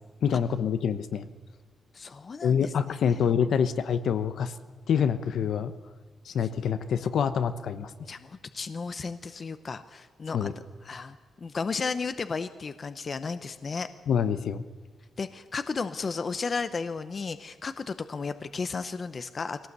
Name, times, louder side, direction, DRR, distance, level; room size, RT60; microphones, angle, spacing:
voice 1, 0.2-1.3 2.4-4.5 4.9-5.7 6.2-7.9 10.3-10.5 14.1-14.6, left 7 dB, 70° left, 11 dB, 1.1 m, -26 dB
voice 2, 1.9-2.7 3.1-3.2 8.1-10.5 10.8-13.9 15.2-19.6, left 4 dB, 35° left, 11 dB, 0.7 m, -34 dB
22.0 x 17.5 x 8.2 m, 1.3 s
wide cardioid pair, 135°, 0 cm